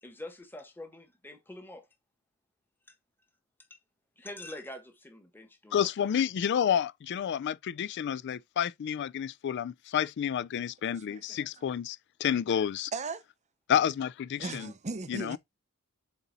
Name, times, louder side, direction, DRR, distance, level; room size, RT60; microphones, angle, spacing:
voice 1, 0.0-1.9 3.7-3.8 4.2-5.9, left 1 dB, 10° left, 1.3 m, -45 dB
voice 2, 5.7-12.9 13.7-14.7 15.1-15.4, left 9 dB, 55° left, 0.3 m, -30 dB
voice 3, 11.1-11.5 12.9-13.2 14.4-15.4, right 3 dB, 30° right, 0.7 m, -37 dB
7.9 x 4.1 x 4.0 m
head